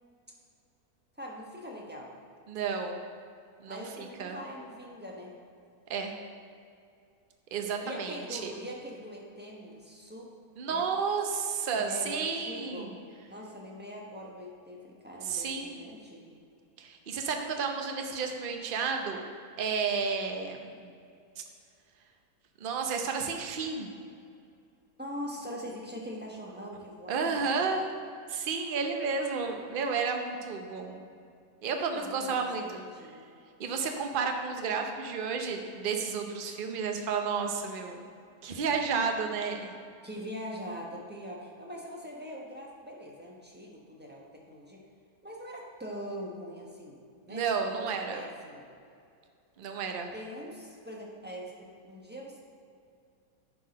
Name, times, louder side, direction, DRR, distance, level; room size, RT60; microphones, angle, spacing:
voice 1, 1.2-2.1 3.7-5.3 7.8-10.3 10.7-10.9 11.8-12.9 13.3-16.3 25.0-27.8 31.8-33.2 40.0-44.8 45.2-47.0 47.3-48.7 50.1-52.4, equal, 5° right, -2 dB, 1.0 m, -42 dB
voice 2, 2.5-3.0 3.6-4.4 5.9-6.1 7.5-8.5 10.6-12.9 15.2-15.8 16.8-19.2 19.6-20.9 21.4-21.5 22.6-23.9 27.1-27.9 28.3-31.0 31.6-32.8 33.6-38.0 38.4-39.7 47.3-48.2 49.6-50.1, right 5 dB, 45° right, 4 dB, 0.8 m, -32 dB
10.0 x 4.8 x 5.3 m, 2.4 s
omnidirectional pair, 1.6 m